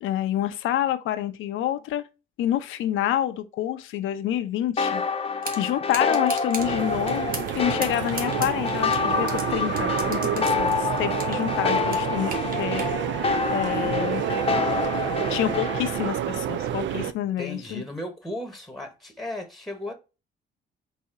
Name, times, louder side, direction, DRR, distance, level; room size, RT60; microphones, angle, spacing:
voice 1, 0.0-2.0 2.4-5.0 5.6-12.8 13.5-14.3 15.3-17.8, left 12 dB, 80° left, 0.6 m, -28 dB
sound 1, 4.8-16.1, left 5 dB, 30° left, 0.7 m, -27 dB
sound 2, 5.4-5.6 5.9-6.7 7.1-7.6 7.8-9.4 9.8-11.4 11.7-12.9, right 4 dB, 45° right, 1.4 m, -34 dB
sound 3, 6.6-17.1, right 10 dB, 70° right, 0.5 m, -29 dB
voice 2, 17.4-19.9, left 1 dB, ahead, 1.1 m, -35 dB
4.2 x 2.7 x 4.6 m
cardioid pair, 90°, 20 cm